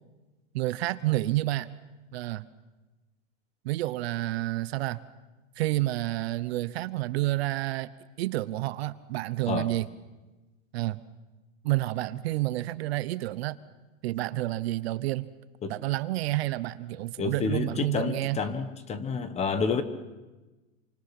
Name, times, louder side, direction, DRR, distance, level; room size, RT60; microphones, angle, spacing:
voice 1, 0.5-1.7 2.1-2.5 3.6-5.0 5.6-7.9 8.2-9.9 10.7-11.0 11.6-13.6 14.0-15.3 15.7-18.4, right 17 dB, 50° right, 15 dB, 1.0 m, -29 dB
voice 2, 17.2-19.8, left 5 dB, 15° left, 11 dB, 1.2 m, -29 dB
28.0 x 25.0 x 5.9 m, 1.2 s
supercardioid pair, 150°, 39 cm